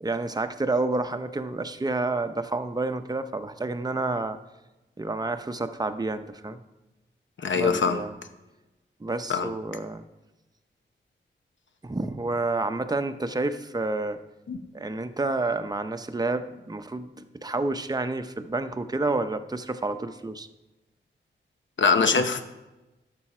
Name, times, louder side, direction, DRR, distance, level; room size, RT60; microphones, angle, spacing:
voice 1, 0.0-4.4 5.0-6.6 7.5-8.2 9.0-10.0 11.8-14.2 14.7-20.5, right 2 dB, 20° right, 9 dB, 0.7 m, -29 dB
voice 2, 7.4-8.0 9.3-9.5 14.5-14.6 21.8-22.4, left 5 dB, 75° left, 8 dB, 0.9 m, -22 dB
12.0 x 6.9 x 4.3 m, 1.0 s
wide cardioid pair, 90°, 19 cm